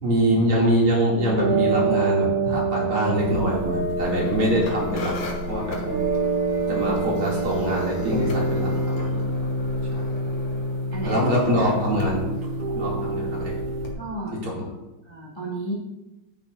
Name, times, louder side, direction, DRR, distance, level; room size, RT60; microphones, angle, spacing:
voice 1, 0.0-5.8 6.7-9.3 9.9-10.0 11.0-12.3 12.7-13.5 14.4-14.5, equal, 75° right, -4 dB, 3.4 m, -24 dB
sound 1, 1.1-13.9, right 3 dB, 50° right, 3.9 m, -26 dB
sound 2, 3.2-13.9, left 2 dB, 85° left, 2.3 m, -38 dB
voice 2, 14.0-14.4 15.0-15.7, right 2 dB, 15° left, -6 dB, 1.7 m, -33 dB
10.0 x 9.8 x 2.6 m, 1.0 s
omnidirectional pair, 2.4 m